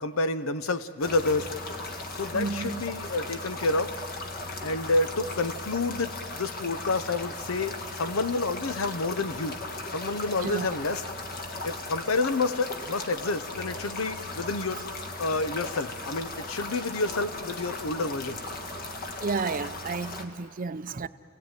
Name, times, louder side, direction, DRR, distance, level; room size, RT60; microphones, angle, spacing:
voice 1, 0.0-1.6 2.2-4.0 4.6-9.6 9.9-11.0 11.6-14.8 15.2-18.4, left 3 dB, 85° left, 0.8 m, -29 dB
sound 1, 1.0-20.2, left 2 dB, 45° left, 1.6 m, -37 dB
voice 2, 2.3-2.8 10.4-10.7 19.2-21.1, right 4 dB, 40° right, 0.5 m, -31 dB
29.5 x 16.5 x 9.1 m
head